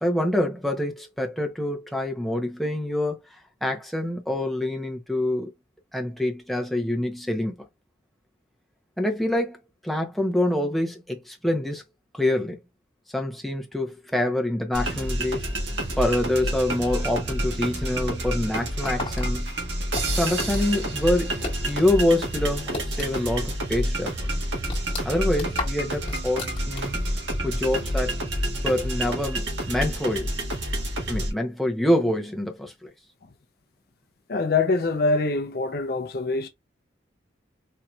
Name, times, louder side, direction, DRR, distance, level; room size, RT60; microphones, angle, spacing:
voice 1, 0.0-5.5 5.9-7.5 9.0-9.6 9.8-11.8 12.1-12.6 13.1-15.5 16.0-19.5 20.1-21.4 21.7-24.3 25.0-27.0 27.4-28.2 28.6-30.3 31.1-32.9, left 1 dB, ahead, 0.8 m, -26 dB
sound 1, 14.7-31.3, right 1 dB, 75° right, 1.5 m, -28 dB
sound 2, 18.8-21.9 22.2-23.5 23.7-23.8 24.3-27.1, left 2 dB, 30° left, 1.6 m, -35 dB
voice 2, 34.3-36.5, left 3 dB, 55° left, 0.6 m, -24 dB
4.4 x 2.8 x 2.4 m
head